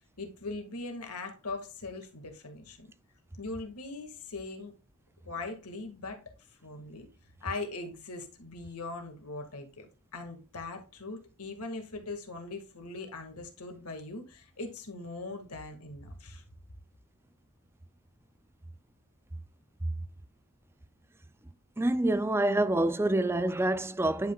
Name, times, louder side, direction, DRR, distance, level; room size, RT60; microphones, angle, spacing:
voice 1, 0.2-2.9 3.4-4.7 5.3-6.2 6.6-7.1 7.4-9.9 10.1-16.4, left 3 dB, 85° left, 1.9 m, -40 dB
voice 2, 21.8-24.3, right 1 dB, 10° right, 0.4 m, -27 dB
10.0 x 5.6 x 2.3 m
head